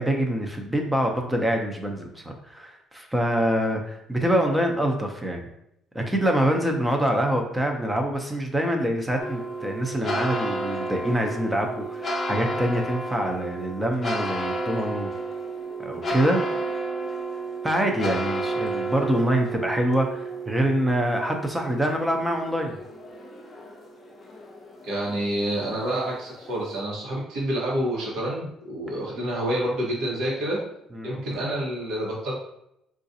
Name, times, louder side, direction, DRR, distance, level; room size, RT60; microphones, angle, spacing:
voice 1, 0.0-5.5 5.9-15.1 15.8-16.4 17.6-22.8 30.9-31.2, right 1 dB, 10° right, 3 dB, 0.5 m, -25 dB
sound 1, 9.2-26.8, right 2 dB, 30° left, 0.6 m, -32 dB
voice 2, 24.8-30.6 31.0-32.4, right 1 dB, 80° right, -3 dB, 1.2 m, -28 dB
3.8 x 2.4 x 2.7 m, 0.80 s
cardioid pair, 125°, 0 cm